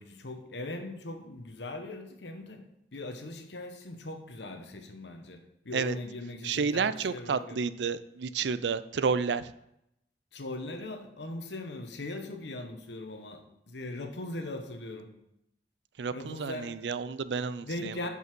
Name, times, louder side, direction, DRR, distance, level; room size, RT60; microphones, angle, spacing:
voice 1, 0.0-2.6 2.9-5.4 5.6-7.6 10.3-13.4 13.7-15.1 16.1-16.7 17.6-18.1, left 2 dB, 80° left, 5 dB, 1.2 m, -39 dB
voice 2, 6.4-9.5 16.0-17.9, right 5 dB, 80° right, 14 dB, 0.4 m, -30 dB
7.5 x 5.6 x 6.0 m, 0.81 s
head